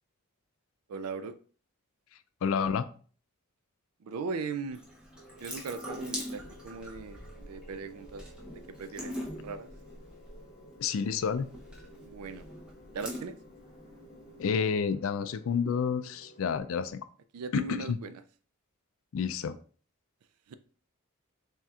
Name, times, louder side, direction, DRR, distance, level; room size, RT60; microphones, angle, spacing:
voice 1, 0.9-1.4 4.0-4.8 5.4-8.3 8.7-9.2 9.4-9.7 12.0-12.5 12.9-13.3 17.3-18.2 20.5-20.6, right 4 dB, 85° right, 0.4 m, -38 dB
voice 2, 2.4-2.8 10.8-11.5 14.4-17.0 17.5-18.0 19.1-19.6, left 6 dB, 65° left, 0.3 m, -29 dB
Water tap faucet / Sink (filling or washing) / Drip, 4.7-14.5, equal, 5° right, 0.7 m, -44 dB
sound 1, 5.1-16.9, equal, 30° left, 1.2 m, -55 dB
4.2 x 3.5 x 2.3 m
head